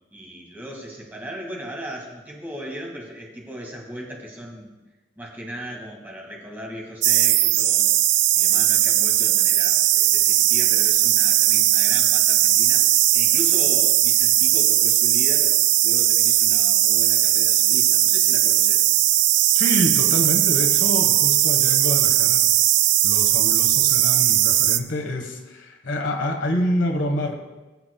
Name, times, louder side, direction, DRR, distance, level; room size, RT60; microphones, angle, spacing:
voice 1, 0.1-4.8 5.2-7.9 8.3-12.9 13.1-15.5 15.8-18.9, equal, 10° right, -1 dB, 1.9 m, -37 dB
sound 1, 7.0-24.8, right 13 dB, 70° right, 0.4 m, -18 dB
voice 2, 19.5-22.4 23.0-27.3, left 1 dB, 80° left, 5 dB, 1.2 m, -27 dB
20.5 x 7.5 x 2.2 m, 1.1 s
head